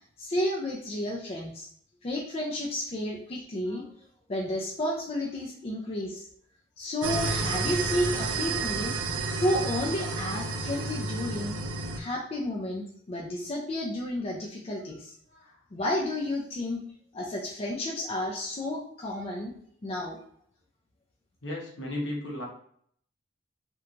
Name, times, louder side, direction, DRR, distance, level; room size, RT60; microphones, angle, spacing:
voice 1, 0.2-1.7 2.0-3.9 4.3-6.3 6.8-8.9 9.4-11.6 11.9-15.1 15.7-16.8 17.1-19.5 19.8-20.2, left 1 dB, 30° left, -1 dB, 0.4 m, -31 dB
sound 1, 7.0-12.0, right 3 dB, 85° right, 0.4 m, -31 dB
voice 2, 21.4-22.4, left 1 dB, 65° left, -2 dB, 0.9 m, -35 dB
2.9 x 2.2 x 2.5 m, 0.63 s
head